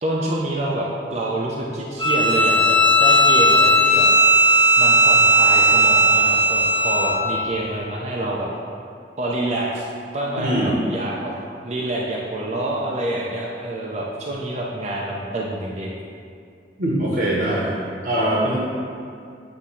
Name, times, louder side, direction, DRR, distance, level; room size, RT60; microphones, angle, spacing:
voice 1, 0.0-4.1 4.8-8.5 9.2-9.9 10.1-11.3 11.6-16.0, right 1 dB, 40° right, -3 dB, 0.6 m, -27 dB
Bowed string instrument, 2.0-7.2, right 1 dB, 30° left, 0.9 m, -16 dB
voice 2, 10.4-10.8 16.8-18.6, right 1 dB, 60° right, -5 dB, 1.2 m, -22 dB
8.0 x 3.6 x 5.7 m, 2.4 s
head